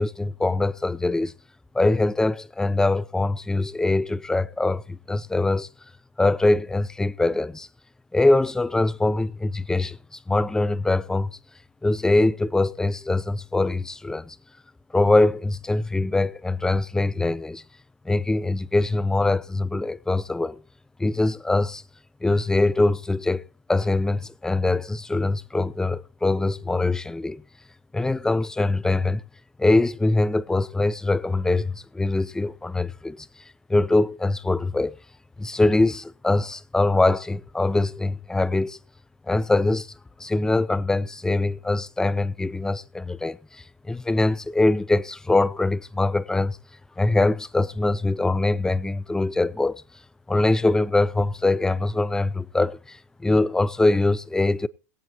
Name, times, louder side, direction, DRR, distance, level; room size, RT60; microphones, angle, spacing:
voice 1, 0.0-1.3 1.7-5.7 6.2-7.7 8.1-10.0 10.3-11.3 11.8-14.4 14.9-17.6 18.0-20.6 21.0-21.8 22.2-27.4 27.9-29.2 29.6-33.3 33.7-35.0 35.4-38.8 39.3-39.9 40.2-46.6 47.0-49.8 50.3-54.7, left 2 dB, 5° left, 0.6 m, -23 dB
22.0 x 8.2 x 3.0 m
hypercardioid pair, 90°, 8 cm